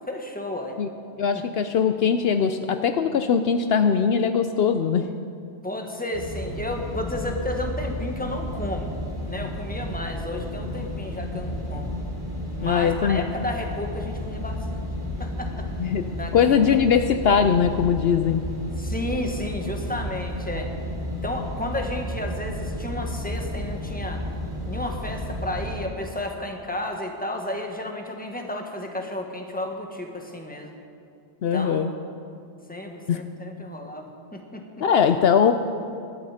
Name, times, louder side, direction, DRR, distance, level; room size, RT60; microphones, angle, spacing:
voice 1, 0.1-0.8 1.3-1.4 5.6-9.0 9.3-11.9 12.5-14.8 15.2-15.7 16.2-16.8 18.8-20.7 21.2-24.2 24.7-30.8 31.5-31.8 32.7-34.8, left 1 dB, 10° left, 2 dB, 1.5 m, -32 dB
voice 2, 1.2-5.1 12.6-13.2 15.8-16.1 16.3-18.4 31.4-31.9 33.1-33.2 34.8-35.5, left 7 dB, 70° left, 8 dB, 0.8 m, -21 dB
sound 1, 6.1-25.8, equal, 75° right, 3.8 m, -32 dB
19.0 x 12.5 x 5.0 m, 2.5 s
omnidirectional pair, 1.1 m